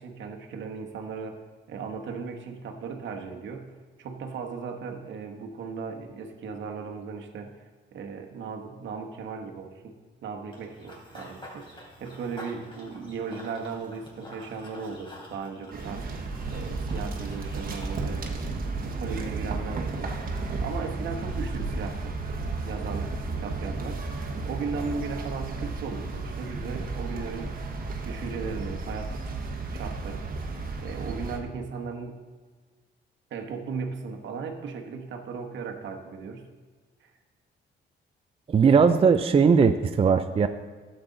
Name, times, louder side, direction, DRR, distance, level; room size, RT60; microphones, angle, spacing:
voice 1, 0.0-1.4 1.7-3.7 4.0-7.5 7.9-10.0 10.2-16.1 16.5-18.3 18.8-20.2 20.6-22.2 22.6-24.0 24.4-27.6 28.0-29.2 29.7-30.4 30.8-32.2 33.3-36.5 37.0-37.1, right 5 dB, 70° right, 4 dB, 1.2 m, -36 dB
Run / Bird vocalization bird call bird song, 10.5-18.0, equal, 25° left, 3.2 m, -47 dB
sound 1, 15.7-31.4, right 3 dB, 45° right, 1.2 m, -33 dB
voice 2, 38.5-40.5, right 5 dB, 30° right, 8 dB, 0.4 m, -19 dB
11.5 x 7.9 x 3.9 m, 1.4 s
cardioid pair, 90°, 20 cm